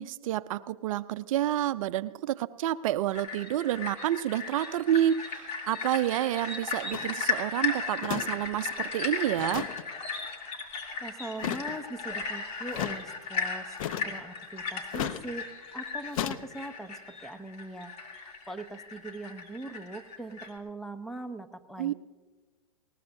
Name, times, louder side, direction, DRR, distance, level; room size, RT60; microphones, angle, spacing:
voice 1, 0.0-9.7 21.8-21.9, right 12 dB, 60° right, 15 dB, 0.5 m, -29 dB
sound 1, 3.1-20.6, left 4 dB, 35° left, 2.8 m, -36 dB
sound 2, 6.9-7.1 8.0-8.3 8.5-8.6 9.4-9.8 11.4-11.8 12.7-13.0 13.8-14.2 14.9-15.2 16.1-16.4, left 11 dB, 60° left, 0.8 m, -33 dB
voice 2, 11.0-13.8 14.0-15.5 15.7-21.9, right 2 dB, ahead, 9 dB, 0.7 m, -41 dB
20.0 x 19.5 x 2.7 m, 1.3 s
hypercardioid pair, 115°, 19 cm